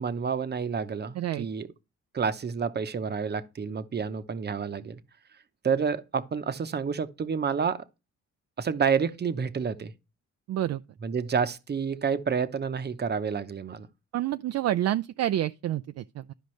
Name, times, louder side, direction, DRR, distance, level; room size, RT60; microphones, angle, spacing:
voice 1, 0.0-1.7 2.1-5.0 5.6-7.8 8.6-9.9 11.0-13.9, right 6 dB, 35° right, 0.8 m, -29 dB
voice 2, 1.1-1.5 10.5-10.8 14.1-16.3, right 13 dB, 55° right, 0.4 m, -28 dB
12.0 x 5.1 x 3.2 m
cardioid pair, 90°, 30 cm